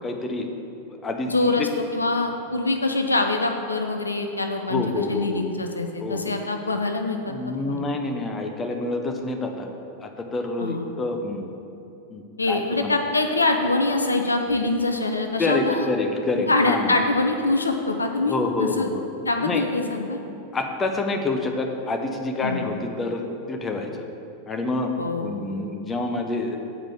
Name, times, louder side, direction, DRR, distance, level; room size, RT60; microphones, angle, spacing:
voice 1, 0.0-0.5 1.0-1.7 4.7-5.5 6.0-6.3 7.3-9.7 10.0-11.5 12.1-12.9 15.4-17.0 18.3-19.0 19.4-19.6 20.5-23.2 23.5-24.0 24.5-24.9 25.2-26.6, left 3 dB, 20° left, 4 dB, 0.9 m, -27 dB
voice 2, 1.3-7.8 10.6-10.9 12.4-15.8 16.5-18.9 19.2-20.2 22.4-22.6 24.9-25.3, left 2 dB, 80° left, 5 dB, 0.6 m, -24 dB
8.4 x 5.2 x 7.1 m, 2.8 s
figure-of-eight pair, 90°, 0 cm